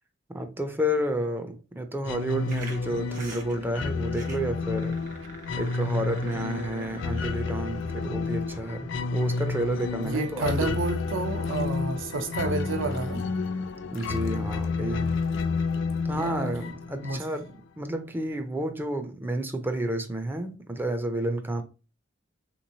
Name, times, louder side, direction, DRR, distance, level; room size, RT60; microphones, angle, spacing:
voice 1, 0.3-5.2 5.5-10.8 13.9-15.2 16.0-17.5 17.8-21.6, right 1 dB, 10° right, 0.4 m, -30 dB
sound 1, 2.0-17.5, left 4 dB, 65° left, 0.4 m, -31 dB
sound 2, 2.5-8.6, right 3 dB, 45° right, 0.9 m, -47 dB
voice 2, 10.0-13.3 16.1-16.5 17.0-17.2, right 3 dB, 80° right, 0.6 m, -30 dB
sound 3, 10.4-16.4, left 5 dB, 85° left, 0.8 m, -50 dB
3.4 x 3.0 x 2.6 m
head